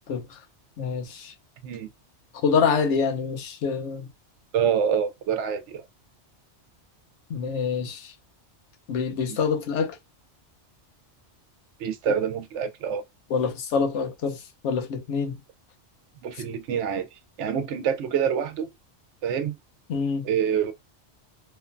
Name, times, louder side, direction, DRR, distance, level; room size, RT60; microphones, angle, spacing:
voice 1, 0.1-0.4 0.8-1.3 2.4-4.1 7.3-8.1 8.9-10.0 12.1-12.2 13.3-15.4 19.9-20.2, left 5 dB, 80° left, 1.0 m, -26 dB
voice 2, 4.5-5.8 11.8-13.0 16.2-17.1 17.4-18.7 19.2-19.5 20.2-20.7, right 8 dB, 80° right, 0.9 m, -26 dB
3.0 x 2.1 x 2.5 m
omnidirectional pair, 1.2 m